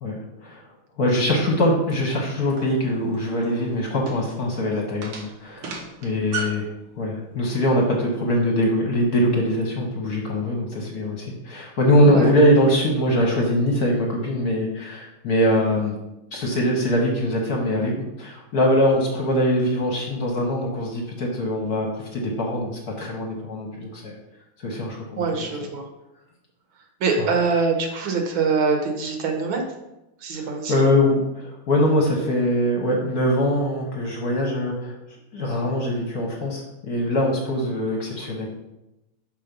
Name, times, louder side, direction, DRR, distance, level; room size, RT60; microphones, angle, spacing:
voice 1, 0.0-0.6 1.0-6.7 7.0-15.9 16.3-22.7 23.0-24.1 24.6-25.2 27.2-27.3 30.3-35.0 35.3-38.5, left 1 dB, 50° left, -1 dB, 1.4 m, -22 dB
sound 1, 2.6-6.7, right 4 dB, 90° right, 2.0 m, -35 dB
voice 2, 25.2-25.9 27.0-29.6 30.2-30.8, right 4 dB, 70° right, 3 dB, 1.7 m, -24 dB
5.8 x 4.5 x 5.2 m, 0.93 s
omnidirectional pair, 2.4 m